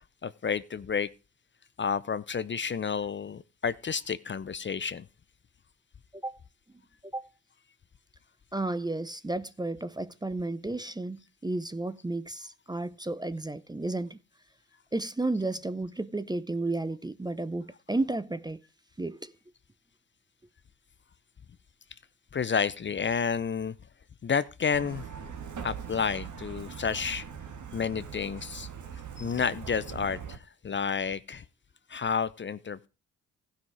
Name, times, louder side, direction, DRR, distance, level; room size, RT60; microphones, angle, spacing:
voice 1, 0.2-1.1 1.8-5.1 22.3-23.8 24.2-25.1 25.6-27.2 27.7-28.7 29.2-31.4 31.9-32.9, left 6 dB, 30° left, 0.6 m, -30 dB
voice 2, 8.5-14.2 14.9-18.6 19.0-19.3, right 2 dB, 10° right, 0.7 m, -32 dB
Truck, 24.7-30.4, right 7 dB, 55° right, 1.8 m, -41 dB
15.5 x 5.7 x 4.6 m
supercardioid pair, 55°, 35 cm